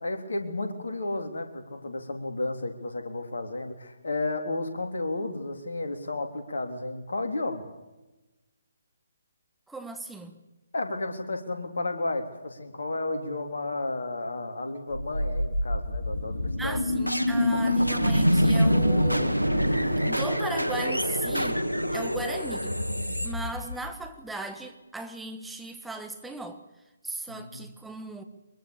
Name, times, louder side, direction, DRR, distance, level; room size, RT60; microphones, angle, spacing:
voice 1, 0.0-7.6 10.7-16.8 27.3-27.7, left 2 dB, 60° left, 5 dB, 3.5 m, -32 dB
voice 2, 9.7-10.4 16.6-19.4 19.7-21.7 21.9-22.7 23.2-26.6 27.0-28.2, right 2 dB, 5° right, 5 dB, 1.6 m, -37 dB
sound 1, 14.9-24.1, equal, 90° left, 1.9 m, -25 dB
23.5 x 22.5 x 7.1 m, 1.1 s
figure-of-eight pair, 140°, 0 cm